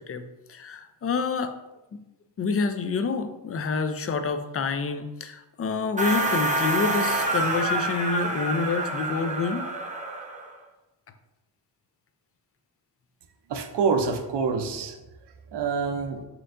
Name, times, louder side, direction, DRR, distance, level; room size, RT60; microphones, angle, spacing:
voice 1, 0.5-1.5 1.9-2.0 2.4-9.7, left 4 dB, 35° left, 8 dB, 0.4 m, -28 dB
sound 1, 6.0-10.5, right 2 dB, 20° right, 0.7 m, -27 dB
voice 2, 13.5-15.0 15.5-16.2, right 5 dB, 70° right, 6 dB, 0.6 m, -26 dB
4.4 x 3.7 x 2.5 m, 1.0 s
cardioid pair, 90°, 43 cm